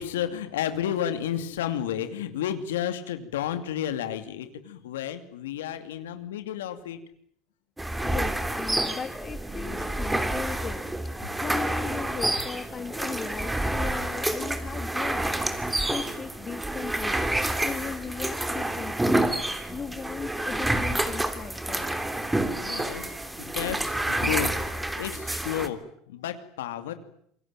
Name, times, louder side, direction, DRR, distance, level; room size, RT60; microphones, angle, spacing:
voice 1, 0.0-7.0 22.6-23.1 23.4-24.5 25.0-25.8 26.1-26.9, left 10 dB, 90° left, 9 dB, 2.6 m, -31 dB
sound 1, 7.8-25.7, right 1 dB, 10° right, 3.3 m, -28 dB
voice 2, 8.0-19.2 19.7-21.9, left 6 dB, 30° left, 10 dB, 2.5 m, -38 dB
27.0 x 23.0 x 9.1 m, 0.68 s
supercardioid pair, 90°, 0 cm